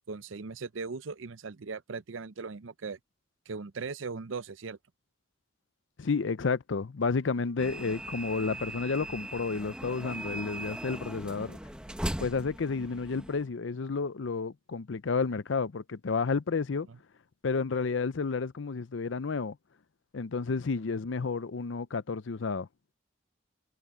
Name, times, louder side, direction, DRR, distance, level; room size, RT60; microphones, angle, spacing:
voice 1, 0.0-3.0 3.5-4.8 16.9-17.0, right 4 dB, 85° right, 0.6 m, -39 dB
voice 2, 6.0-11.6 12.2-16.9 17.4-19.6 20.1-22.7, left 4 dB, 75° left, 0.6 m, -31 dB
sound 1, 7.6-13.4, right 1 dB, 5° right, 0.9 m, -39 dB
head